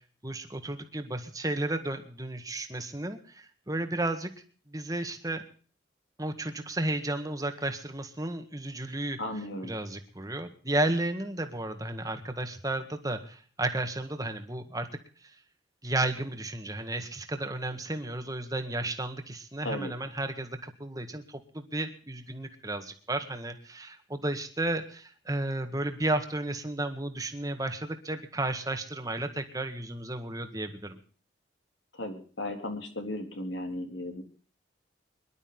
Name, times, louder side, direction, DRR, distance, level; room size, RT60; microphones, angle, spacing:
voice 1, 0.2-4.3 4.7-5.4 6.2-9.2 9.6-14.9 15.2-15.4 15.8-31.0, right 2 dB, 20° right, 7 dB, 1.8 m, -33 dB
voice 2, 9.2-9.7 19.6-19.9 31.9-34.2, left 1 dB, 75° left, 5 dB, 3.5 m, -35 dB
23.5 x 12.0 x 3.9 m, 0.42 s
head